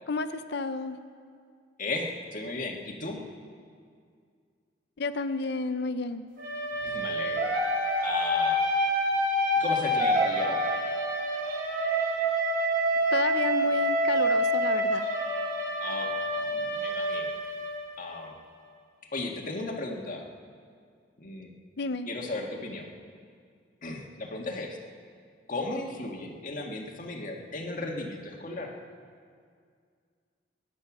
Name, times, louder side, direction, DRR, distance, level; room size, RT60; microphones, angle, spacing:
voice 1, 0.1-1.0 5.0-6.2 13.1-15.1 21.8-22.1, left 3 dB, 65° left, 11 dB, 0.6 m, -31 dB
voice 2, 1.8-3.2 6.8-7.5 8.0-8.6 9.6-10.7 15.8-17.3 18.0-18.4 19.1-20.2 21.2-21.5 22.1-22.9 23.8-24.8 25.5-28.7, left 2 dB, 45° left, 1 dB, 1.8 m, -35 dB
sound 1, 6.4-18.2, equal, 55° right, 5.7 m, -27 dB
22.0 x 10.5 x 6.1 m, 2.1 s
head